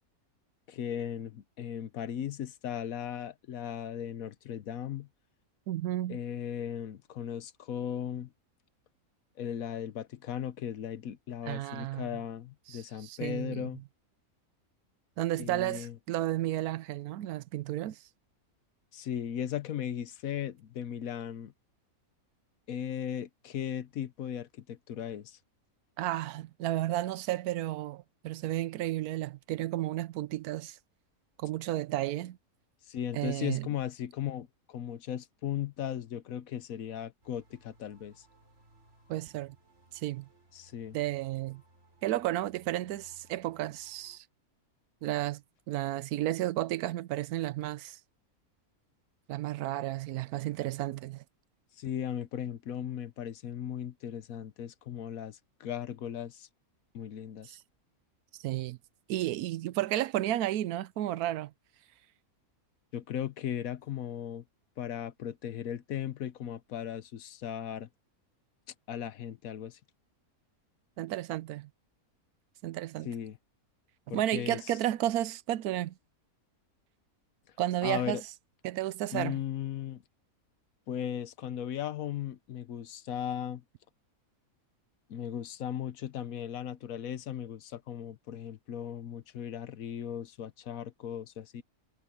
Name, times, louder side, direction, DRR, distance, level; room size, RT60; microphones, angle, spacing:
voice 1, 0.7-5.1 6.1-8.3 9.4-13.8 15.3-16.0 18.9-21.5 22.7-25.4 32.9-38.2 40.5-41.0 51.7-56.5 56.9-57.6 62.9-64.4 64.8-67.9 68.9-69.8 73.0-73.4 74.1-74.8 77.8-78.2 79.1-80.0 80.9-83.6 85.1-91.6, left 9 dB, 70° left, 1.2 m, -37 dB
voice 2, 5.7-6.2 11.5-12.2 12.7-13.7 15.2-18.0 26.0-30.8 31.4-32.4 33.1-33.7 39.1-39.6 40.0-40.3 40.9-41.6 42.0-44.2 45.0-45.4 45.7-48.0 49.3-51.2 57.5-57.6 58.4-58.8 59.1-61.5 71.0-71.7 72.6-73.1 74.1-75.9 77.6-78.2 78.6-79.4, right 14 dB, 80° right, 1.1 m, -32 dB
sound 1, 37.2-44.2, right 2 dB, 50° right, 5.1 m, -63 dB
omnidirectional pair, 1.6 m